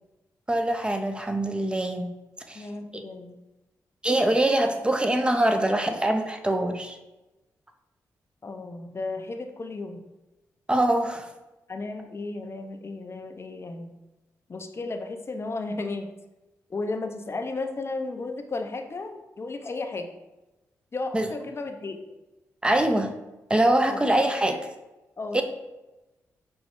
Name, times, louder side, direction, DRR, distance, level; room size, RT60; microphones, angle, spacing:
voice 1, 0.5-2.1 2.5-2.7 2.9-3.0 4.0-7.0 10.7-11.3 21.1-21.3 22.6-23.1 23.5-24.6 25.3-25.4, right 1 dB, 15° right, 6 dB, 0.5 m, -23 dB
voice 2, 2.5-3.4 8.4-10.0 11.7-13.9 14.5-16.1 16.7-20.1 20.9-22.0 23.9-24.0 24.4-24.6 25.2-25.4, left 3 dB, 40° left, 5 dB, 0.5 m, -34 dB
5.2 x 2.3 x 3.0 m, 1.0 s
supercardioid pair, 45°, 7 cm